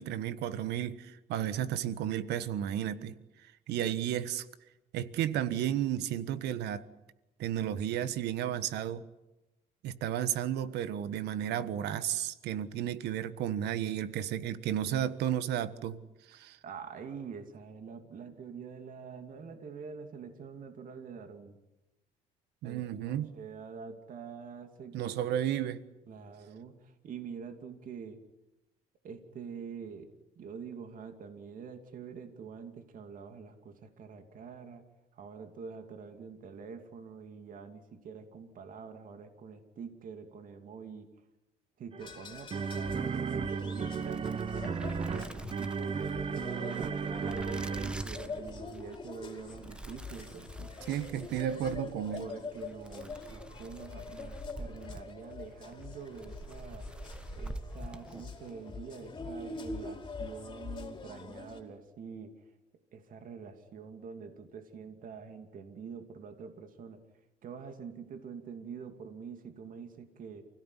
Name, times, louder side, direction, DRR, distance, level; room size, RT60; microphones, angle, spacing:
voice 1, 0.0-3.1 3.4-4.5 4.9-6.8 7.4-9.0 9.8-16.0 16.3-16.6 22.6-23.3 24.9-25.8 50.9-52.3, right 10 dB, 80° right, 1.4 m, -33 dB
voice 2, 16.6-21.6 22.6-25.3 26.1-28.2 29.0-30.1 30.4-34.8 35.1-41.1 41.8-44.2 45.0-50.7 52.2-56.9 57.3-62.5 62.9-67.0 67.4-70.4, right 6 dB, 55° right, 2.8 m, -46 dB
sound 1, 41.9-48.4, right 6 dB, 35° right, 1.1 m, -35 dB
sound 2, 42.0-61.6, left 4 dB, 25° left, 4.8 m, -45 dB
sound 3, 43.7-58.6, right 1 dB, 5° right, 1.3 m, -46 dB
29.0 x 16.5 x 10.0 m
cardioid pair, 110°, 17 cm